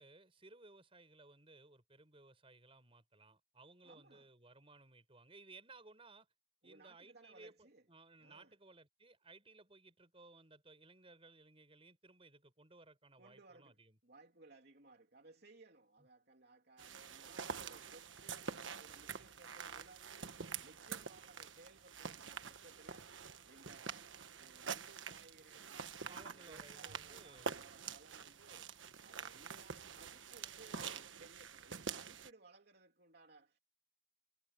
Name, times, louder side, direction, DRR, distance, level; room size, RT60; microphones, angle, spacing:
voice 1, 0.0-6.3 6.6-14.0 26.1-27.6 29.3-29.4, right 3 dB, 30° right, 6.0 m, -60 dB
voice 2, 3.8-4.3 6.6-7.8 8.2-8.5 13.2-33.6, right 3 dB, 55° right, 3.2 m, -62 dB
sound 1, 16.8-32.3, right 6 dB, 90° right, 1.4 m, -47 dB
head